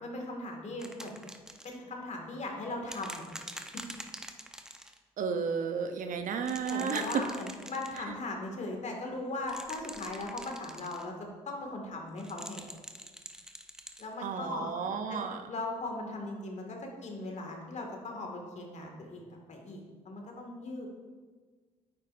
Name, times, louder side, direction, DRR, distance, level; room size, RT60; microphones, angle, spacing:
voice 1, 0.0-1.3 1.6-3.3 6.6-12.8 14.0-14.7 15.1-15.2 15.5-20.9, left 2 dB, 50° left, 1 dB, 2.1 m, -39 dB
sound 1, 0.8-1.8 2.9-5.0 6.4-8.0 9.4-11.1 12.2-14.1 15.2-15.3, equal, 5° right, 0.9 m, -45 dB
voice 2, 5.2-7.2 8.0-8.1 14.2-15.4, right 6 dB, 60° right, 7 dB, 0.8 m, -32 dB
9.5 x 8.5 x 2.6 m, 1.4 s
hypercardioid pair, 45°, 15 cm